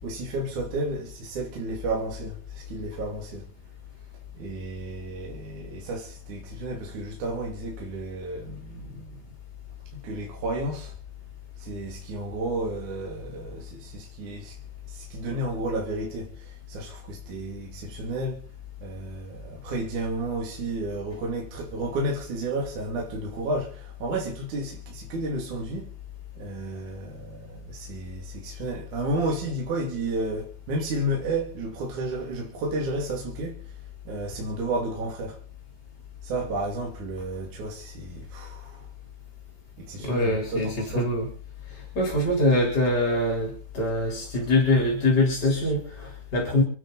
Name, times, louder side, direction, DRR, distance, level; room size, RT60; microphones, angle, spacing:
voice 1, 0.0-3.5 4.3-9.2 9.9-11.0 11.6-14.6 14.9-18.4 18.8-25.9 26.4-33.8 34.0-35.4 36.2-38.9 39.8-41.1, right 2 dB, 45° right, 3.4 m, -32 dB
voice 2, 40.0-41.3 41.9-46.6, left 1 dB, 20° left, 4.1 m, -24 dB
28.5 x 9.6 x 4.1 m
omnidirectional pair, 5.5 m